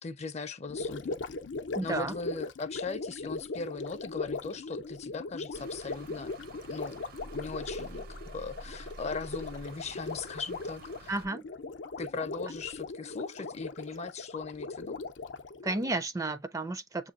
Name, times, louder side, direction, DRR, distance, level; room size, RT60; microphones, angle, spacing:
voice 1, 0.0-1.2 1.8-6.3 6.7-7.0 7.3-8.1 8.3-11.1 12.0-15.0, left 4 dB, 40° left, 0.5 m, -39 dB
Gurgling, 0.7-16.0, left 3 dB, 85° left, 0.6 m, -39 dB
voice 2, 1.7-2.1 11.1-11.4 15.6-17.1, right 2 dB, 20° right, 0.4 m, -32 dB
sound 1, 5.5-11.3, right 1 dB, 55° right, 0.7 m, -48 dB
7.0 x 2.9 x 2.4 m
head